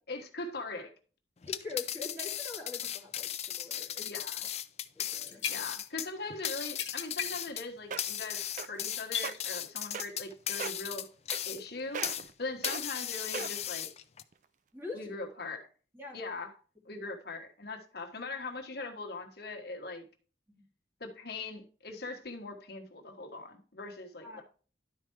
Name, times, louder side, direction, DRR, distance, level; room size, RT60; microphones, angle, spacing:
voice 1, 0.1-0.9 4.0-4.5 5.5-11.1 11.4-12.0 12.4-13.9 14.9-15.7 16.1-16.5 16.8-20.1 21.0-24.4, left 3 dB, 60° left, 1.3 m, -41 dB
sound 1, 1.4-12.3 12.6-14.2, left 11 dB, 35° left, 0.5 m, -37 dB
voice 2, 1.5-4.1 4.9-5.6 14.7-15.1 15.9-16.2 17.0-17.2 20.5-20.6 24.2-24.4, left 3 dB, 15° right, 2.5 m, -44 dB
sound 2, 4.7-4.8 5.0-6.1 6.4-6.5 6.8-7.6 8.0-8.2 8.7-9.5 10.1-10.2, left 8 dB, 85° left, 1.6 m, -38 dB
sound 3, 7.5-7.6 7.9-8.2 8.6-8.9 9.2-9.3 9.9-10.3 10.6-10.9 11.3-11.7 11.9-12.3 12.6-12.8 13.3-13.7 14.3-14.4, right 6 dB, 45° right, 0.4 m, -37 dB
11.5 x 4.6 x 4.5 m
head